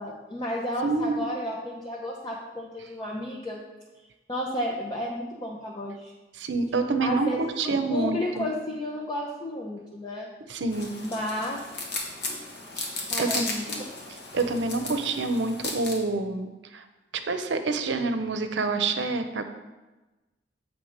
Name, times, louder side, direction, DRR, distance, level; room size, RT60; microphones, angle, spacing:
voice 1, 0.0-3.6 4.3-6.1 7.0-10.3 11.0-11.6 13.1-13.8, left 1 dB, 25° left, -3 dB, 0.7 m, -32 dB
voice 2, 0.8-1.3 6.3-8.5 10.5-11.0 12.8-12.9 13.2-13.5 14.3-16.8 17.1-19.4, right 3 dB, 85° right, 7 dB, 0.6 m, -27 dB
sound 1, 10.7-16.0, left 3 dB, 65° left, 1.3 m, -35 dB
7.2 x 3.7 x 5.1 m, 1.1 s
head